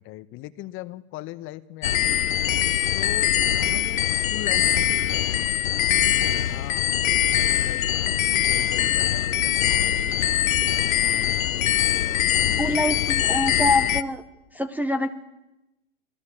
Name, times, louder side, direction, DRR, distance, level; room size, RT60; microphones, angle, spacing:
voice 1, 0.0-2.3 2.9-3.3 3.6-5.6 6.3-10.4 11.0-12.8, left 16 dB, 30° left, 15 dB, 0.9 m, -40 dB
sound 1, 1.8-14.0, left 11 dB, 80° left, 0.9 m, -22 dB
voice 2, 12.6-14.2 14.5-15.1, left 1 dB, 5° right, 5 dB, 0.7 m, -25 dB
25.5 x 16.5 x 8.7 m, 0.98 s
hypercardioid pair, 115°, 40 cm